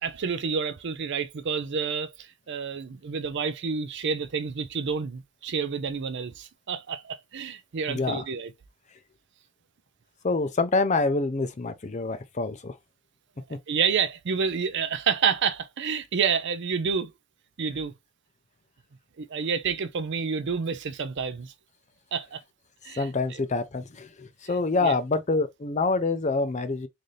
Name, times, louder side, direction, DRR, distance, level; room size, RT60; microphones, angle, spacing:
voice 1, 0.0-8.5 13.7-17.1 17.6-17.9 19.2-21.5 22.1-22.4 22.8-23.1 24.8-25.0, right 6 dB, 50° right, 0.5 m, -29 dB
voice 2, 7.9-8.2 10.2-12.8 23.0-26.9, left 3 dB, 30° left, 0.5 m, -26 dB
4.0 x 2.6 x 3.2 m
head